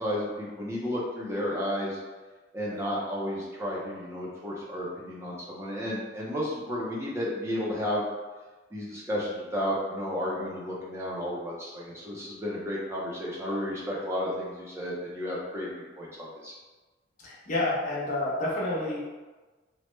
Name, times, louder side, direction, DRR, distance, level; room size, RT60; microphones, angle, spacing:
voice 1, 0.0-2.0 2.5-8.0 8.7-16.5, equal, 15° right, -5 dB, 0.5 m, -32 dB
voice 2, 17.2-19.0, left 1 dB, 45° left, -6 dB, 0.8 m, -29 dB
3.0 x 2.1 x 3.1 m, 1.3 s
head